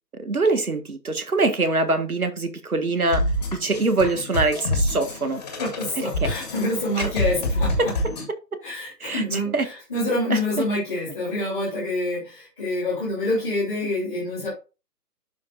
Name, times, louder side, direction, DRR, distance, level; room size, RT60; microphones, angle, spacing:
voice 1, 0.1-3.2 3.5-5.4 6.2-6.3 7.0-7.1 9.0-9.6 10.3-10.4, right 3 dB, 60° right, 1.7 m, -23 dB
sound 1, 3.1-8.3, left 1 dB, 25° left, 1.7 m, -27 dB
voice 2, 5.3-7.9 8.6-14.5, left 1 dB, ahead, 0.8 m, -27 dB
11.5 x 5.1 x 2.6 m
figure-of-eight pair, 145°, 48 cm